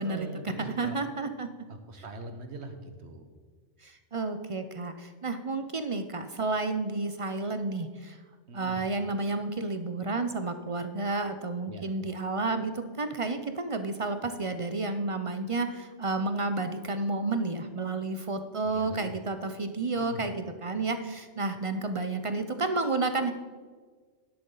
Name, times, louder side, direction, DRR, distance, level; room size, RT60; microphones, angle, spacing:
voice 1, 0.0-1.0 1.7-3.3 8.5-8.8 11.7-11.9 18.6-19.1 20.0-20.2, right 2 dB, 65° right, 7 dB, 1.4 m, -42 dB
voice 2, 0.6-1.5 3.8-8.2 8.5-23.3, right 3 dB, 35° right, 9 dB, 0.5 m, -31 dB
12.0 x 10.5 x 3.9 m, 1.5 s
omnidirectional pair, 1.2 m